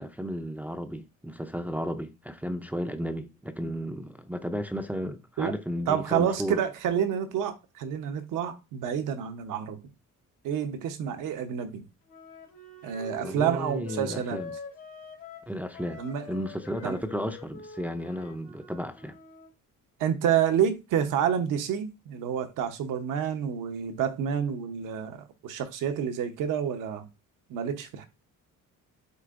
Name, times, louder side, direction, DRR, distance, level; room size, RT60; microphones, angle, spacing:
voice 1, 0.0-6.6 13.2-14.5 15.5-16.0 16.3-19.1, equal, 5° right, 0.5 m, -33 dB
voice 2, 5.9-9.8 10.4-11.8 12.8-14.4 16.0-16.3 16.8-16.9 20.0-27.0 27.5-28.1, right 8 dB, 75° right, 0.9 m, -28 dB
Wind instrument woodwind instrument, 12.1-19.5, left 5 dB, 90° left, 2.9 m, -44 dB
7.9 x 2.7 x 2.5 m
cardioid pair, 100°, 32 cm